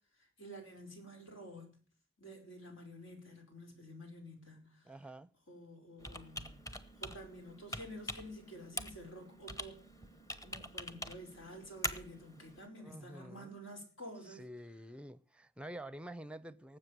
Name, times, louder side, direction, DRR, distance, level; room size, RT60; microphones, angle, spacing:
voice 1, 0.2-1.8 2.2-4.9 5.5-9.8 10.4-14.5, equal, 75° left, 4.9 m, -50 dB
voice 2, 4.8-5.3 12.8-13.6 14.3-16.8, right 1 dB, 5° right, 0.6 m, -48 dB
Computer keyboard, 6.0-12.7, left 1 dB, 15° left, 1.1 m, -45 dB
19.0 x 7.9 x 6.8 m
head